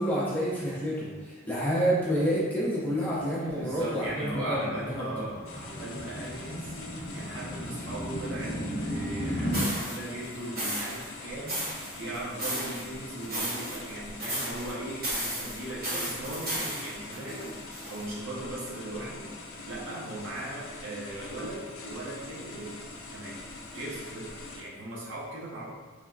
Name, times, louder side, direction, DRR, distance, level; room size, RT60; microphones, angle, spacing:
voice 1, 0.0-4.6 4.9-5.1, equal, 10° left, -10 dB, 0.7 m, -28 dB
sound 1, 3.2-9.6, equal, 45° left, 0.7 m, -36 dB
voice 2, 3.6-19.3 19.6-22.8 23.1-23.4 23.7-24.3 24.6-25.7, right 1 dB, 65° right, -6 dB, 0.7 m, -38 dB
sound 2, 5.4-24.6, left 2 dB, 80° left, 0.4 m, -43 dB
sound 3, 9.5-9.9 10.6-11.1 11.5-12.8 13.2-13.9 14.2-14.7 15.0-18.0, right 1 dB, 45° right, 1.0 m, -33 dB
3.2 x 2.1 x 2.4 m, 1.4 s
head